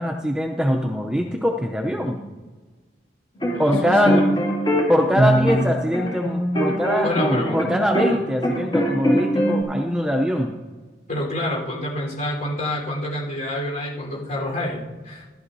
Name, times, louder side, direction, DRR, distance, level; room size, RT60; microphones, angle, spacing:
voice 1, 0.0-2.2 3.6-4.3 4.9-10.5, equal, 5° right, 3 dB, 0.5 m, -22 dB
sound 1, 3.4-8.1 8.4-9.6, equal, 25° left, 2.4 m, -21 dB
voice 2, 6.9-7.6 11.1-15.2, left 1 dB, 45° left, -3 dB, 3.9 m, -28 dB
14.0 x 11.5 x 2.7 m, 1.3 s
head